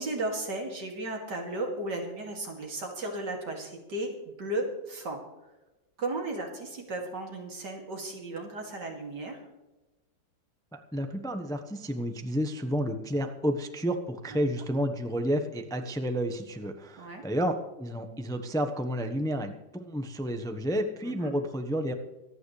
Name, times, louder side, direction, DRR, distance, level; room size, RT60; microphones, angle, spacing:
voice 1, 0.0-4.1 4.4-5.2 6.0-9.4 14.3-14.4 17.0-17.2 21.0-21.3, right 2 dB, 75° right, 1 dB, 3.1 m, -35 dB
voice 2, 10.7-21.9, equal, 5° left, 6 dB, 0.8 m, -31 dB
25.0 x 9.3 x 3.3 m, 1.1 s
omnidirectional pair, 1.9 m